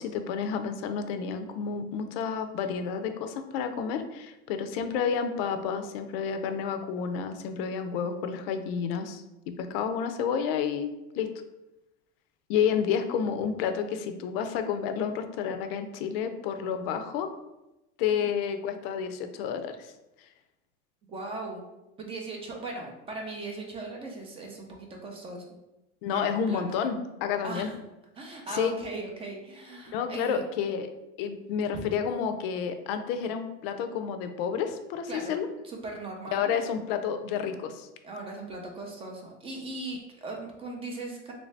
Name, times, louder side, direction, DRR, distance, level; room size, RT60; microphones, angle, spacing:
voice 1, 0.0-11.3 12.5-17.3 18.0-19.9 26.0-27.7 28.5-28.7 29.9-30.9 31.2-35.5 36.3-37.9, left 7 dB, 80° left, 8 dB, 0.5 m, -30 dB
voice 2, 21.1-21.6 22.0-25.6 26.1-26.6 27.4-27.7 28.2-30.4 31.7-31.8 35.1-35.4 35.6-36.6 38.0-41.3, right 2 dB, 20° right, 1 dB, 0.4 m, -38 dB
3.1 x 2.6 x 3.2 m, 0.95 s
cardioid pair, 155°, 29 cm